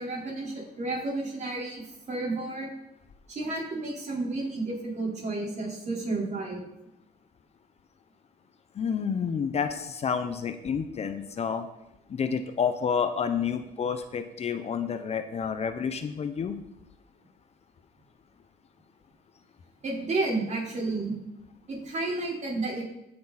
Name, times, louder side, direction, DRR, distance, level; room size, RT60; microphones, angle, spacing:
voice 1, 0.0-1.8 2.1-2.7 3.3-6.6 19.8-21.1 21.7-22.8, right 2 dB, 45° right, -2 dB, 4.0 m, -31 dB
voice 2, 8.7-11.7 12.1-16.6, left 6 dB, 40° left, 9 dB, 0.8 m, -29 dB
15.5 x 6.7 x 4.1 m, 0.86 s
cardioid pair, 110°, 17 cm